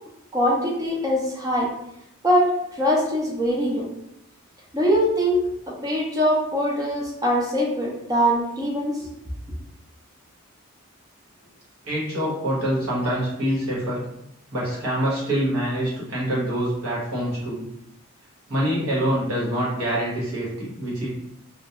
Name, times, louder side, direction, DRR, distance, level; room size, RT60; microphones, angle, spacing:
voice 1, 0.3-1.7 2.2-3.9 4.7-9.1, equal, 15° right, -3 dB, 0.4 m, -22 dB
voice 2, 11.8-14.0 14.5-17.6 18.5-21.1, equal, 80° right, -6 dB, 1.1 m, -25 dB
2.2 x 2.2 x 2.8 m, 0.79 s
head